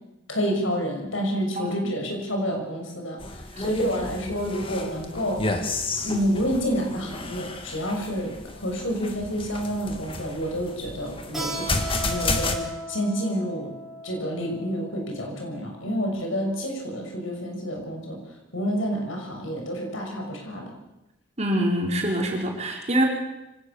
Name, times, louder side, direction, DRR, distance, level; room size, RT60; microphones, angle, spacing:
voice 1, 0.3-3.2 3.6-5.4 6.0-13.7 14.0-18.2 18.5-20.7, equal, 80° left, 2 dB, 6.9 m, -29 dB
voice 2, 1.6-1.9 3.6-3.7 21.4-23.0, right 1 dB, 35° right, 0 dB, 4.7 m, -25 dB
sound 1, 3.2-12.6, left 2 dB, 25° left, 2.0 m, -32 dB
Keyboard (musical), 11.3-16.6, right 1 dB, ahead, 7.4 m, -37 dB
24.5 x 18.0 x 7.1 m, 0.93 s
head